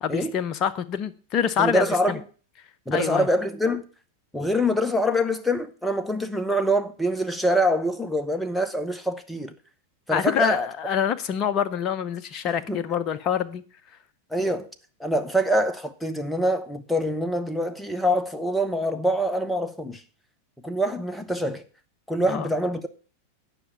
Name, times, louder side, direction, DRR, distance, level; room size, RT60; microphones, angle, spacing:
voice 1, 0.0-2.2 2.9-3.3 10.1-13.6 22.3-22.5, left 8 dB, 35° left, 0.6 m, -26 dB
voice 2, 1.6-2.2 2.9-3.8 4.3-9.5 10.1-10.7 12.5-12.8 14.3-14.7 15.0-20.0 20.6-21.6 22.1-22.9, equal, ahead, 0.8 m, -25 dB
10.0 x 5.7 x 7.0 m
figure-of-eight pair, 90°, 0 cm